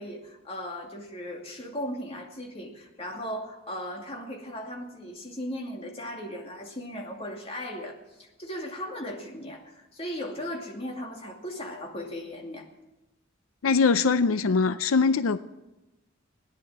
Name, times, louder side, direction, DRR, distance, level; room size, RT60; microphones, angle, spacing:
voice 1, 0.0-12.7, equal, 30° left, 0 dB, 2.5 m, -37 dB
voice 2, 13.6-15.4, left 4 dB, 85° left, 13 dB, 0.5 m, -22 dB
17.0 x 10.5 x 7.3 m, 0.99 s
head